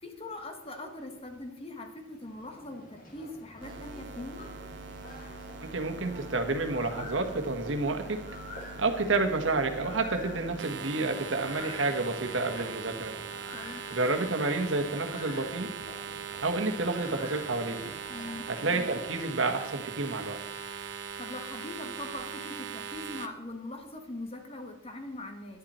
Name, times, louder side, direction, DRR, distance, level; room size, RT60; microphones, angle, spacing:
voice 1, 0.0-4.5 13.5-13.8 18.1-18.5 21.2-25.6, left 2 dB, 30° left, 5 dB, 1.4 m, -41 dB
sound 1, 1.9-20.3, left 2 dB, 45° left, 1.8 m, -48 dB
sound 2, 3.6-23.3, right 6 dB, 65° right, 0.8 m, -41 dB
voice 2, 5.6-8.2 8.8-13.1 13.9-15.7 16.4-17.9 18.6-20.4, right 3 dB, 80° right, 6 dB, 1.3 m, -30 dB
10.5 x 10.5 x 4.3 m, 0.90 s
head